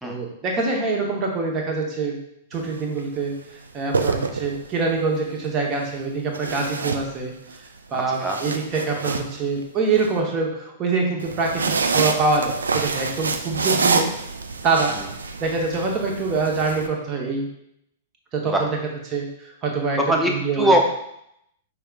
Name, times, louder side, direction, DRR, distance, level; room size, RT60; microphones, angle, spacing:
voice 1, 0.0-2.2 2.5-3.3 3.7-7.3 7.9-14.1 14.6-14.9 15.4-17.5 18.3-18.7 19.1-20.0 20.2-20.7, right 4 dB, 30° right, 0 dB, 1.0 m, -25 dB
sound 1, 2.5-2.8 3.7-4.9 6.3-7.6 8.0-10.1 11.2-16.9, right 4 dB, 75° right, 0.3 m, -26 dB
voice 2, 7.9-8.4 14.9-15.1 18.4-18.7 20.0-20.8, right 1 dB, 5° right, 1 dB, 0.7 m, -22 dB
5.6 x 3.5 x 2.4 m, 0.78 s
figure-of-eight pair, 105°, 0 cm